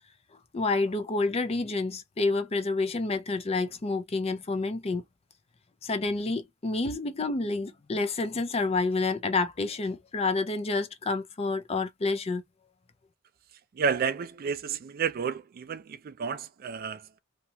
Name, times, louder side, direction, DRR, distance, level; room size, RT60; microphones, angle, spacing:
voice 1, 0.5-5.0 5.8-12.4, left 3 dB, 30° left, 0.5 m, -29 dB
voice 2, 13.7-17.2, right 6 dB, 45° right, 0.4 m, -31 dB
2.9 x 2.3 x 2.7 m
head